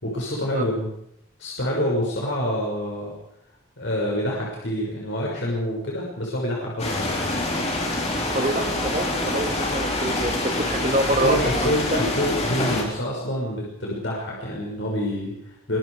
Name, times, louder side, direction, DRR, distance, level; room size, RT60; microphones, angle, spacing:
voice 1, 0.0-0.9 1.4-3.1 3.8-7.1 11.2-15.8, equal, 60° left, -3 dB, 6.3 m, -27 dB
sound 1, 6.8-12.8, left 1 dB, 30° left, 4.5 m, -26 dB
voice 2, 8.3-12.1, right 1 dB, 35° right, 4 dB, 2.4 m, -26 dB
24.5 x 22.5 x 5.0 m, 0.75 s
head